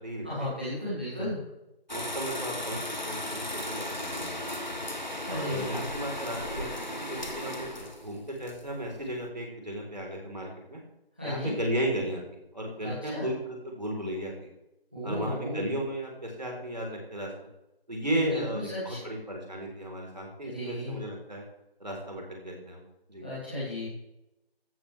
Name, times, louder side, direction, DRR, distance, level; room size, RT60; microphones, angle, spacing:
voice 1, 0.2-1.4 5.2-5.8 11.2-11.5 12.8-13.3 14.9-15.6 18.0-19.0 20.4-21.0 23.2-23.9, left 1 dB, 10° right, -11 dB, 2.7 m, -35 dB
sound 1, 1.9-9.3, left 1 dB, 45° left, 1.3 m, -36 dB
voice 2, 1.9-2.8 3.1-4.9 5.3-6.7 7.0-10.8 11.2-12.2 12.5-14.5 15.0-17.3 17.9-21.4 21.8-22.8 23.1-23.3, right 1 dB, 45° right, 0 dB, 3.9 m, -34 dB
14.0 x 13.5 x 3.4 m, 0.91 s
figure-of-eight pair, 180°, 31 cm